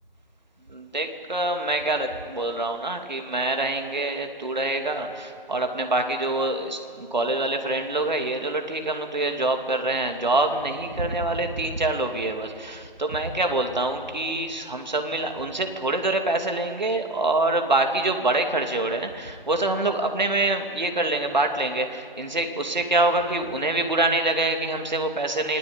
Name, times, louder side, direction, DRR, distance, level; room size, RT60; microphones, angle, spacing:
voice 1, 0.7-25.6, right 2 dB, 50° right, 4 dB, 2.8 m, -25 dB
27.0 x 21.0 x 8.9 m, 2.3 s
figure-of-eight pair, 175°, 29 cm